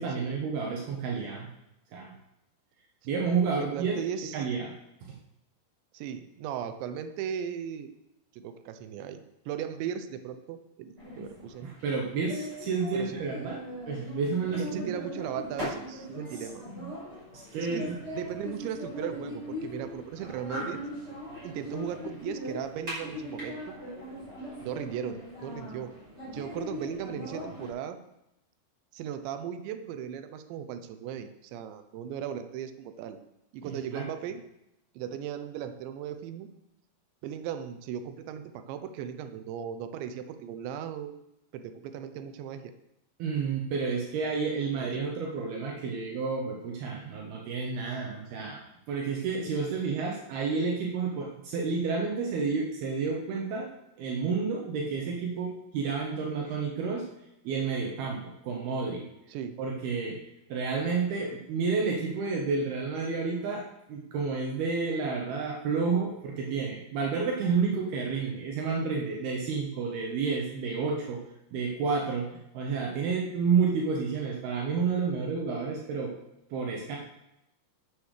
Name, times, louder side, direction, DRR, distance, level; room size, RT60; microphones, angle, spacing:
voice 1, 0.0-1.5 1.9-2.1 3.1-4.0 4.3-4.7 11.6-13.6 13.9-14.9 16.8-16.9 17.3-18.0 33.7-34.0 43.2-48.6 48.9-53.7 54.0-57.0 57.4-59.0 59.6-60.2 60.5-63.6 63.9-71.2 71.5-76.1 76.5-77.0, right 5 dB, 70° right, -1 dB, 3.0 m, -30 dB
voice 2, 3.6-4.5 5.9-7.9 8.3-11.7 12.9-13.2 14.6-16.6 17.6-20.8 21.4-23.8 24.6-25.9 26.3-28.0 28.9-33.2 33.5-34.4 35.0-36.5 37.2-41.2 41.5-42.7 44.8-44.9 59.3-59.6, right 9 dB, 85° right, 9 dB, 3.1 m, -37 dB
sound 1, 11.0-27.7, left 1 dB, 20° right, 6.0 m, -40 dB
9.6 x 8.3 x 6.6 m, 0.84 s
omnidirectional pair, 5.1 m